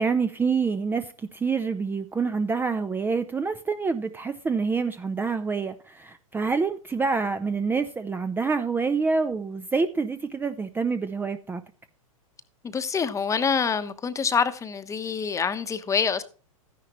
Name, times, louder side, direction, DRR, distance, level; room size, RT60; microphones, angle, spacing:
voice 1, 0.0-11.6, right 4 dB, 10° right, 0.6 m, -27 dB
voice 2, 12.6-16.2, left 6 dB, 15° left, 1.0 m, -26 dB
13.0 x 10.0 x 3.1 m
hypercardioid pair, 110°, 18 cm